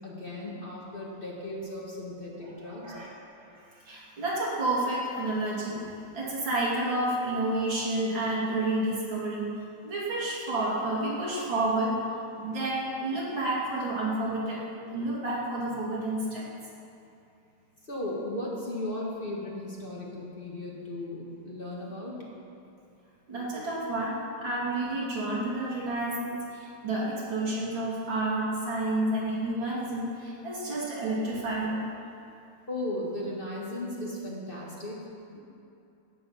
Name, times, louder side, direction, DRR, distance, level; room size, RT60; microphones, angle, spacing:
voice 1, 0.0-2.8 17.8-22.3 32.7-35.4, left 1 dB, 30° left, -4 dB, 1.7 m, -36 dB
voice 2, 2.4-3.1 3.4-3.6 3.9-5.8 6.1-9.5 9.8-11.9 12.3-16.5 23.3-31.8, right 2 dB, 80° right, -6 dB, 3.2 m, -30 dB
12.0 x 8.6 x 5.7 m, 2.7 s
omnidirectional pair, 2.1 m